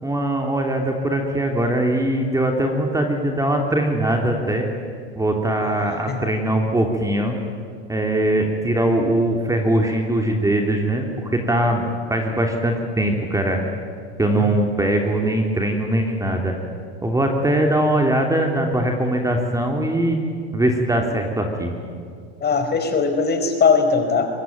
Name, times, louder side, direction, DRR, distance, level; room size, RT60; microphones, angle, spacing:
voice 1, 0.0-4.7 5.2-7.4 7.9-13.6 14.2-16.5 17.0-20.2 20.5-21.7, right 1 dB, 10° right, 2 dB, 3.0 m, -21 dB
voice 2, 5.6-6.3 14.3-14.5 22.4-24.3, left 5 dB, 30° left, 6 dB, 4.5 m, -20 dB
24.0 x 20.5 x 9.4 m, 2.2 s
hypercardioid pair, 95°, 33 cm